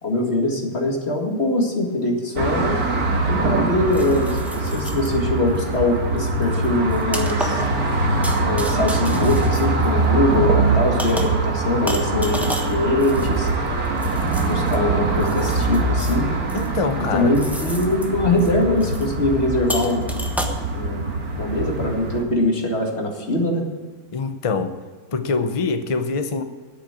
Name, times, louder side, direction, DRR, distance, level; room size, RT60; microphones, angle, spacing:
voice 1, 0.0-2.8 3.3-7.7 8.4-13.5 14.4-16.3 17.1-20.1 20.7-21.1 21.4-23.6, left 1 dB, 40° left, 1 dB, 2.2 m, -22 dB
sound 1, 2.4-22.2, right 2 dB, 65° right, 2.0 m, -23 dB
sound 2, 3.9-5.2 5.6-5.8 6.2-10.3 11.0-11.5 11.9-14.8 15.2-16.2 16.5-16.9 17.3-18.1 18.4-18.5 18.8-19.1 19.7-20.5, equal, ahead, 1.0 m, -33 dB
voice 2, 16.5-17.3 24.1-24.7 25.1-26.4, left 4 dB, 55° left, 8 dB, 0.3 m, -24 dB
9.9 x 8.4 x 8.7 m, 1.4 s
omnidirectional pair, 1.8 m